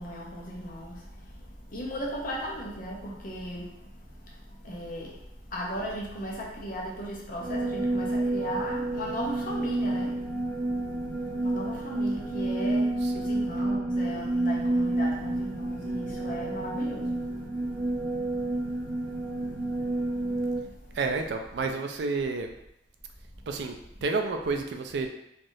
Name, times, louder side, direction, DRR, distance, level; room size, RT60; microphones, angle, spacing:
voice 1, 0.0-21.0, equal, 50° left, -2 dB, 0.7 m, -38 dB
sound 1, 7.4-20.6, right 2 dB, 20° right, 0.8 m, -29 dB
voice 2, 21.0-22.5 23.5-25.1, right 4 dB, 70° right, 5 dB, 0.4 m, -30 dB
3.3 x 2.4 x 2.6 m, 0.78 s
head